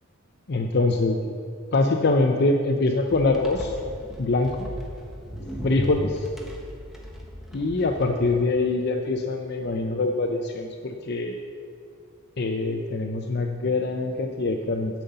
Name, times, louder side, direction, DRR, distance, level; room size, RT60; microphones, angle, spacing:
voice 1, 0.5-1.3 1.7-3.8 4.2-4.7 5.6-6.3 7.5-11.4 12.4-15.0, left 2 dB, 50° left, 4 dB, 0.6 m, -24 dB
sound 1, 3.1-8.4, equal, ahead, 1.1 m, -37 dB
10.5 x 5.5 x 8.0 m, 2.3 s
head